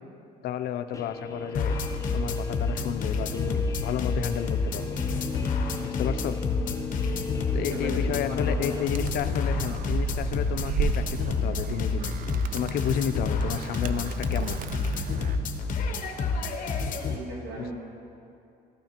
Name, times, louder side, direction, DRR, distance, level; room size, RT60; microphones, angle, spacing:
voice 1, 0.4-1.7 2.1-5.0 5.8-6.4 7.5-12.1 12.5-14.6 17.6-17.7, left 9 dB, 65° left, 11 dB, 0.5 m, -32 dB
Guitar, 0.9-8.8, left 4 dB, 20° left, 0.6 m, -36 dB
sound 1, 1.5-17.2, left 4 dB, 50° left, 0.8 m, -29 dB
voice 2, 7.4-8.9 17.0-17.7, right 1 dB, 70° right, -4 dB, 2.6 m, -38 dB
Animal, 8.9-15.4, right 7 dB, 55° right, 0.5 m, -35 dB
13.0 x 9.2 x 2.9 m, 2.6 s
cardioid pair, 110°, 17 cm